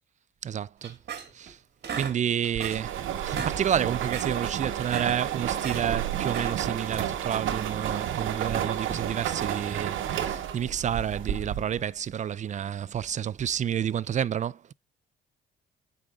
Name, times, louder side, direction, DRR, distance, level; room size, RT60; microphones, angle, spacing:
voice 1, 0.4-1.0 1.3-1.6 1.9-14.7, right 9 dB, 40° right, 0.4 m, -30 dB
sound 1, 0.8-1.5 1.8-2.9 3.2-3.6 3.9-4.3 4.7-5.8 6.2-6.7, right 7 dB, 55° right, 1.7 m, -36 dB
sound 2, 2.5-11.9, right 10 dB, 80° right, 1.1 m, -31 dB
8.3 x 5.4 x 2.4 m
cardioid pair, 90°, 20 cm